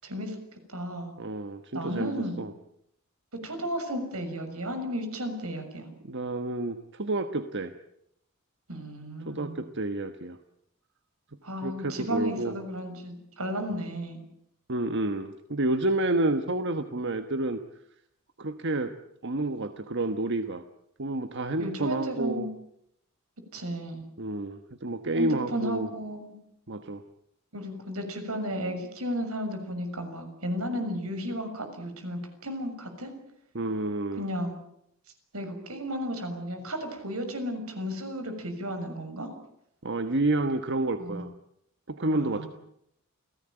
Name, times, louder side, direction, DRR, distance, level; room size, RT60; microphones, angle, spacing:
voice 1, 0.0-0.3 0.7-1.1 1.7-2.4 3.4-5.9 8.7-9.6 11.4-14.2 21.6-22.5 23.5-24.0 25.2-26.3 27.5-33.1 34.2-34.6 35.3-39.3 41.0-41.2 42.1-42.5, equal, 80° right, 6 dB, 6.6 m, -33 dB
voice 2, 1.2-2.5 6.0-7.7 9.2-10.4 11.6-12.5 14.7-17.6 18.4-18.9 19.2-20.6 21.0-22.5 24.2-25.9 26.7-27.0 33.5-34.3 39.8-41.3 41.9-42.5, right 2 dB, 55° right, 9 dB, 1.3 m, -29 dB
29.0 x 17.5 x 9.0 m, 0.76 s
head